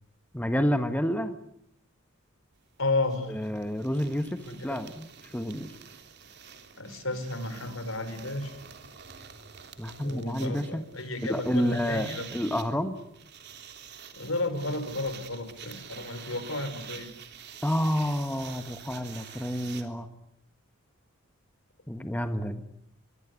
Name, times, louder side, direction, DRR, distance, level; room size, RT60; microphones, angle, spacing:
voice 1, 0.3-1.3 3.3-5.7 9.8-10.9 11.3-13.0 17.6-20.1 21.9-22.6, equal, 10° left, 8 dB, 1.4 m, -29 dB
sound 1, 2.6-2.7 2.9-19.8, right 7 dB, 55° right, 3.4 m, -47 dB
voice 2, 2.8-3.4 4.5-4.8 6.8-8.5 10.0-12.3 14.1-17.1, left 2 dB, 70° left, 10 dB, 5.3 m, -32 dB
24.0 x 23.5 x 9.7 m, 0.73 s
head